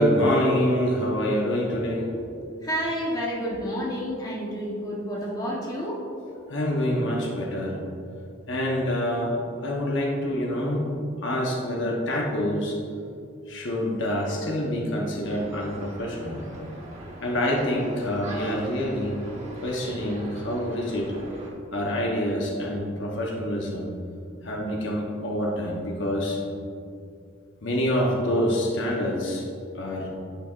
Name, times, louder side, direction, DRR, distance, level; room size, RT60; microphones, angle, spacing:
voice 1, 0.0-2.6 6.3-7.8 8.5-12.8 13.5-16.5 17.2-19.2 19.6-21.1 21.7-23.9 24.4-26.4 27.6-29.4 29.7-30.1, equal, 65° left, -1 dB, 0.9 m, -26 dB
voice 2, 2.6-6.0, equal, 20° left, -4 dB, 1.1 m, -30 dB
sound 1, 15.2-21.5, right 1 dB, 35° right, 1.1 m, -41 dB
10.5 x 5.7 x 2.5 m, 2.4 s
head